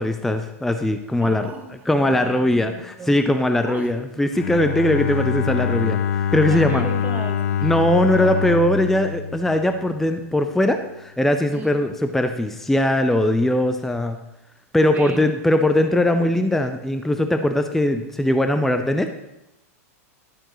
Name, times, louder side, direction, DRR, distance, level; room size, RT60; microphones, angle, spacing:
voice 1, 0.0-1.5 1.9-6.9 7.6-14.2 14.7-19.1, left 1 dB, 5° left, 7 dB, 0.5 m, -20 dB
voice 2, 1.1-3.1 3.6-3.9 6.5-7.8 8.1-8.3 11.5-11.8 14.9-15.3, right 4 dB, 20° right, 4 dB, 1.3 m, -36 dB
Bowed string instrument, 4.3-10.3, left 8 dB, 70° left, 0.5 m, -25 dB
11.5 x 8.7 x 3.1 m, 0.90 s
hypercardioid pair, 120°, 8 cm